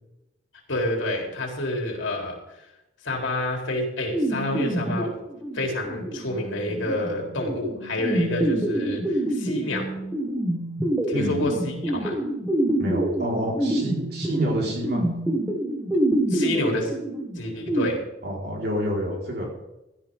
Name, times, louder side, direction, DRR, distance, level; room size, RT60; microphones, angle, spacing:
voice 1, 0.7-2.6 3.0-5.2 5.5-10.0 11.1-12.2 16.3-16.9 17.4-18.0, left 1 dB, 80° left, 0 dB, 3.7 m, -28 dB
sound 1, 4.1-17.9, right 1 dB, 10° right, 1.8 m, -27 dB
voice 2, 11.1-11.4 12.8-15.0 18.2-19.5, equal, 55° right, -2 dB, 4.8 m, -28 dB
16.0 x 12.0 x 3.8 m, 0.91 s
head